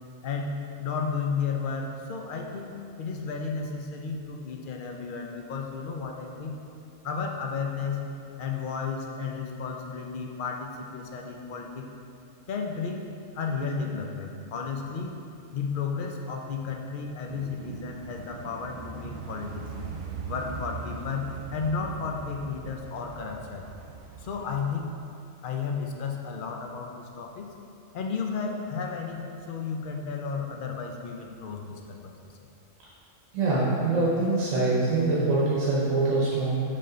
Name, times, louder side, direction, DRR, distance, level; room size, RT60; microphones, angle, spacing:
voice 1, 0.2-6.6 7.0-8.1 8.4-11.9 12.5-13.0 13.3-15.1 15.5-19.6 20.3-23.7 24.2-25.0 25.4-27.5 27.9-32.1, left 5 dB, 50° left, 1 dB, 0.7 m, -33 dB
sound 1, 17.3-24.7, right 4 dB, 70° right, 1.0 m, -40 dB
voice 2, 33.3-36.6, right 3 dB, 90° right, -7 dB, 1.3 m, -24 dB
5.8 x 5.1 x 3.9 m, 2.6 s
omnidirectional pair, 1.3 m